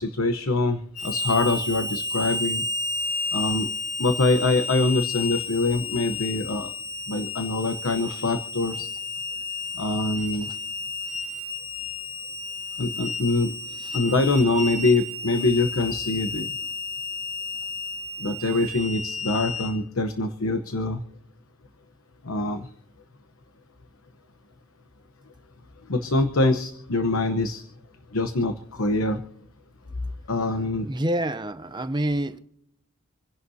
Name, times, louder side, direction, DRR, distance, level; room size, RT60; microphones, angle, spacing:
voice 1, 0.0-2.6 3.3-3.7 4.0-6.7 7.1-8.9 9.8-10.5 12.8-13.5 13.9-16.5 18.2-21.0 22.2-22.7 25.9-27.6 28.1-29.2 30.3-30.9, left 2 dB, 70° left, 1.0 m, -24 dB
Harmonica, 0.9-19.7, left 3 dB, 90° left, 6.5 m, -32 dB
voice 2, 30.9-32.4, right 1 dB, 20° right, 0.7 m, -27 dB
27.5 x 11.0 x 2.8 m
head